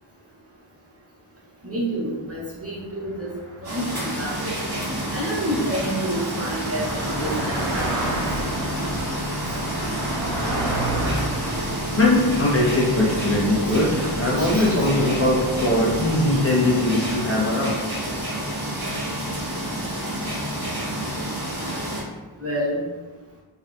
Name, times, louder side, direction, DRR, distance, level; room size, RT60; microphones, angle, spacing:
voice 1, 1.6-3.3 3.6-4.6 5.1-8.2 14.4-14.8 22.4-22.8, right 1 dB, 30° right, -6 dB, 0.7 m, -29 dB
Car passing by, 3.0-14.6, right 1 dB, 65° right, 0.8 m, -32 dB
sound 1, 3.6-22.0, right 1 dB, 50° right, 1.1 m, -29 dB
sound 2, 6.6-18.2, equal, 15° left, 1.3 m, -33 dB
voice 2, 12.0-17.8, left 1 dB, 30° left, -5 dB, 0.5 m, -21 dB
2.6 x 2.4 x 2.2 m, 1.2 s
wide cardioid pair, 50°, 50 cm